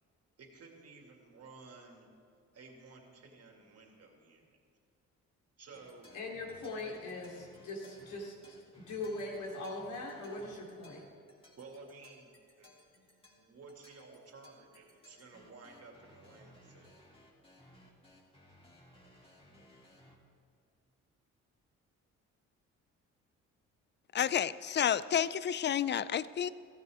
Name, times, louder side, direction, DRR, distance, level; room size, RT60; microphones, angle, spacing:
voice 1, 0.4-2.1 2.5-4.6 5.6-6.2 6.8-6.9 11.6-17.0, right 3 dB, 55° right, 1 dB, 2.5 m, -54 dB
sound 1, 5.7-20.1, left 1 dB, 20° left, 3.2 m, -60 dB
voice 2, 6.1-8.3 8.7-11.0, left 2 dB, 85° left, -2 dB, 3.4 m, -41 dB
voice 3, 24.1-26.5, left 9 dB, 35° left, 17 dB, 0.4 m, -30 dB
15.0 x 14.5 x 3.6 m, 2.4 s
cardioid pair, 90°, 30 cm